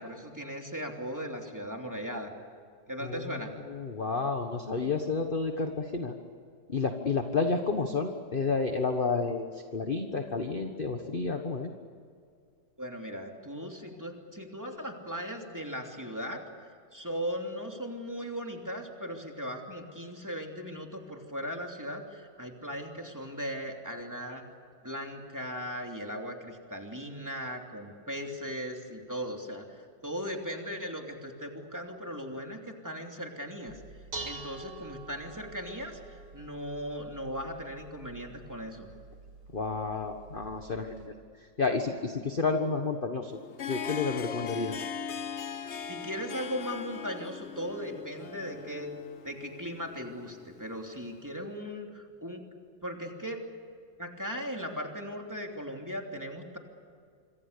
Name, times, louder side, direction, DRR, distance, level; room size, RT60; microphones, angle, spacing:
voice 1, 0.0-2.3 2.9-3.5 12.8-16.4 16.9-24.4 24.8-33.8 34.2-38.9 45.9-48.9 49.2-52.4 52.8-53.4 54.0-56.6, equal, 10° right, 2 dB, 2.9 m, -38 dB
voice 2, 3.0-6.1 6.7-11.7 39.5-41.1 41.6-43.4 43.7-44.9, left 4 dB, 30° left, 5 dB, 1.4 m, -31 dB
Dishes pots and pans, 33.7-41.1, right 3 dB, 60° right, 4.8 m, -47 dB
Harp, 43.3-51.0, left 6 dB, 50° left, 0.9 m, -40 dB
27.0 x 25.0 x 6.8 m, 2.2 s
omnidirectional pair, 2.1 m